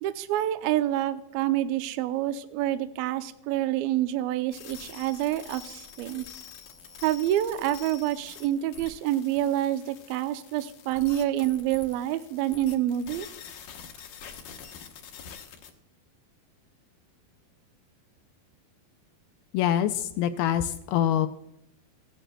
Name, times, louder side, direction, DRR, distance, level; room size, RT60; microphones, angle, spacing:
voice 1, 0.0-6.2 7.0-13.3, right 13 dB, 85° right, 10 dB, 2.1 m, -27 dB
sound 1, 4.5-15.7, left 7 dB, 70° left, 2.1 m, -46 dB
voice 2, 19.5-21.3, left 10 dB, 85° left, 9 dB, 2.2 m, -25 dB
16.0 x 11.5 x 2.2 m, 0.81 s
omnidirectional pair, 4.8 m